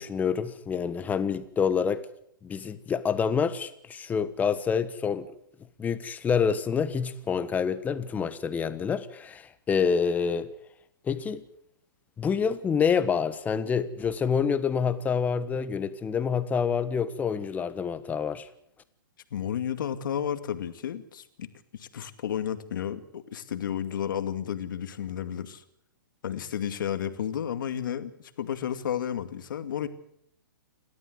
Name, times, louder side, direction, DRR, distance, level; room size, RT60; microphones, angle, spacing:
voice 1, 0.0-2.1 2.4-5.3 5.8-10.5 11.0-11.4 12.2-18.5, left 6 dB, 15° left, 1.3 m, -27 dB
voice 2, 19.3-21.5 21.8-25.6 26.2-28.1 28.4-29.9, left 9 dB, 70° left, 2.4 m, -32 dB
29.5 x 13.0 x 8.0 m
hypercardioid pair, 140°, 11 cm